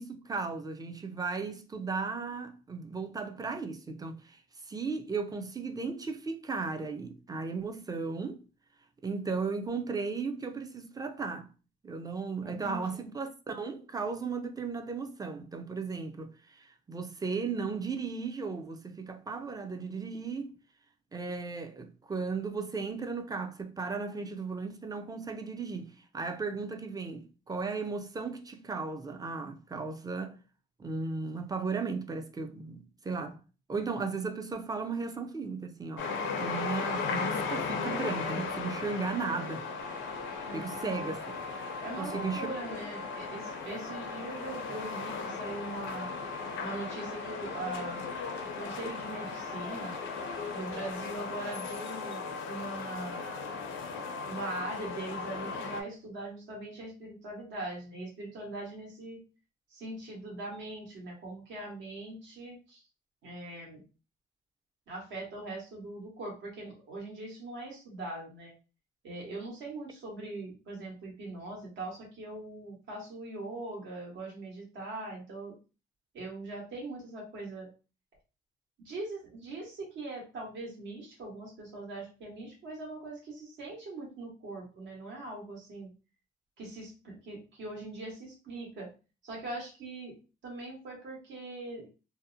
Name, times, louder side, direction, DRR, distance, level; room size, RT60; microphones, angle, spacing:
voice 1, 0.0-4.4 4.7-8.4 9.0-11.5 11.8-20.5 21.1-30.4 30.8-33.4 33.7-36.1 36.4-39.6 40.5-41.2 42.0-42.5, right 4 dB, 20° right, 0.4 m, -36 dB
voice 2, 12.4-13.1 40.5-41.1 41.8-46.1 46.6-48.1 48.6-50.0 50.5-53.6 54.3-59.2 59.7-62.8 63.2-63.8 64.9-68.5 69.0-75.5 76.1-77.7 78.8-85.9 86.6-88.9 89.2-90.1 90.4-91.9, right 2 dB, 70° right, 1.2 m, -41 dB
sound 1, 36.0-55.8, left 4 dB, 75° left, 0.5 m, -37 dB
sound 2, 39.8-51.6, right 1 dB, 90° right, 1.0 m, -52 dB
2.6 x 2.0 x 2.6 m
cardioid pair, 90°, 20 cm